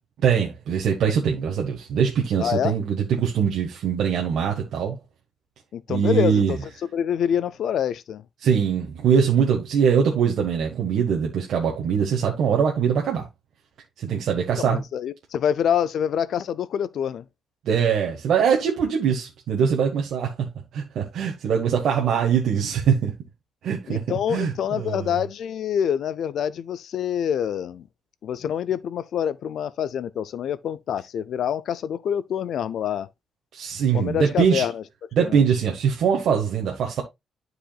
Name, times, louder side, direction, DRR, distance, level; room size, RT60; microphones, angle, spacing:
voice 1, 0.2-5.0 5.9-6.5 8.4-13.3 14.0-14.8 17.6-20.5 20.7-23.1 23.6-24.0 24.3-25.2 33.5-34.7 35.1-37.0, right 7 dB, 70° right, 1.4 m, -22 dB
voice 2, 2.4-2.7 5.7-6.6 6.9-8.2 14.5-17.2 23.9-27.8 28.2-33.1 33.9-34.8 35.2-35.4, left 9 dB, 65° left, 0.4 m, -26 dB
11.5 x 4.9 x 2.3 m
cardioid pair, 155°, 0 cm